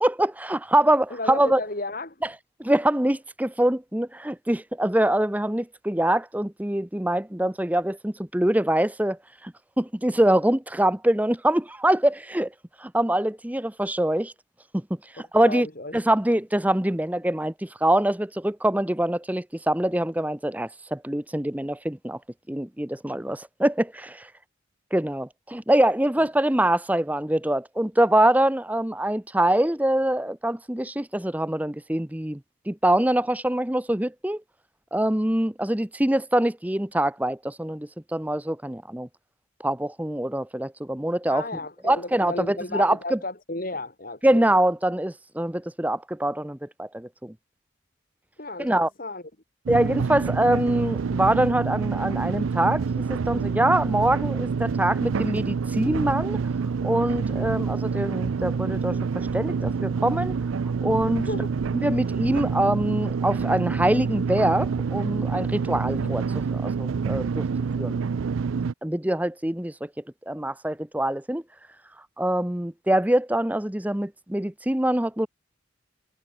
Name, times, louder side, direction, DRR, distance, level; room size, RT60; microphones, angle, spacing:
voice 1, 0.0-1.6 2.6-12.5 12.8-14.3 14.7-14.8 15.1-15.7 15.9-22.2 22.5-24.3 24.9-32.4 32.7-34.4 34.9-39.1 39.6-41.4 41.8-43.2 44.2-47.3 48.6-48.9 49.7-56.4 56.8-60.4 60.8-61.3 61.7-66.2 66.5-67.5 67.8-68.0 68.8-69.9 70.3-71.4 72.2-75.3, right 1 dB, 10° right, 0.7 m, -24 dB
voice 2, 1.1-2.2 15.2-15.9 26.2-26.3 41.3-44.4 48.4-49.2 57.3-57.6 61.2-61.5 65.9-66.2, left 2 dB, 45° left, 2.5 m, -34 dB
sound 1, 49.7-68.7, right 5 dB, 85° right, 0.4 m, -27 dB
head